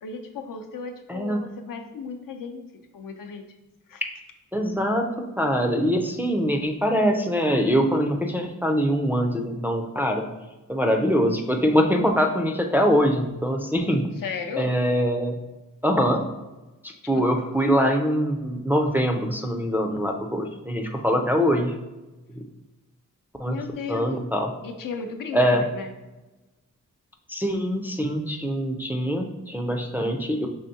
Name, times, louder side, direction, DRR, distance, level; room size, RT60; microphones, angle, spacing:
voice 1, 0.0-2.6 2.9-3.4 3.9-4.0 14.2-14.8 17.0-17.2 23.5-24.2 24.6-25.9, left 5 dB, 85° left, 4 dB, 0.6 m, -35 dB
voice 2, 1.1-1.4 4.5-10.2 10.7-14.1 14.6-15.4 15.8-16.2 16.8-21.7 22.4-22.5 23.4-23.5 23.9-24.5 25.3-25.6 27.3-30.5, equal, 5° right, 2 dB, 0.3 m, -23 dB
5.6 x 3.4 x 2.7 m, 1.1 s
wide cardioid pair, 170°, 33 cm